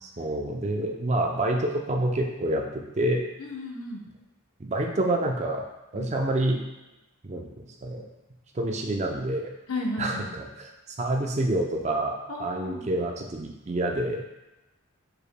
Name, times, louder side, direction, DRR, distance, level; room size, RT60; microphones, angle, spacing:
voice 1, 0.0-3.2 4.6-5.6 5.9-6.6 7.2-8.1 8.5-9.5 10.0-14.2, right 1 dB, 30° right, 1 dB, 0.5 m, -28 dB
voice 2, 3.4-4.0 5.9-6.1 9.7-10.3 12.3-12.9, left 2 dB, 85° left, 0 dB, 0.8 m, -33 dB
4.9 x 4.8 x 2.2 m, 1.0 s
head